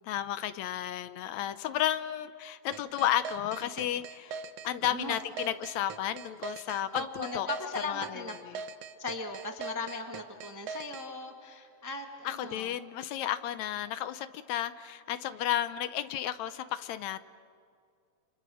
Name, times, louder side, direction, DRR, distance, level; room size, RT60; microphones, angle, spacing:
voice 1, 0.0-4.4 4.6-7.5 7.9-8.6 12.2-17.2, left 11 dB, 75° left, 13 dB, 2.0 m, -33 dB
sound 1, 2.7-11.1, right 5 dB, 65° right, 2.0 m, -41 dB
voice 2, 6.9-8.3 9.0-12.7, left 3 dB, 15° right, 4 dB, 0.8 m, -38 dB
29.0 x 28.0 x 6.3 m, 2.3 s
omnidirectional pair, 3.4 m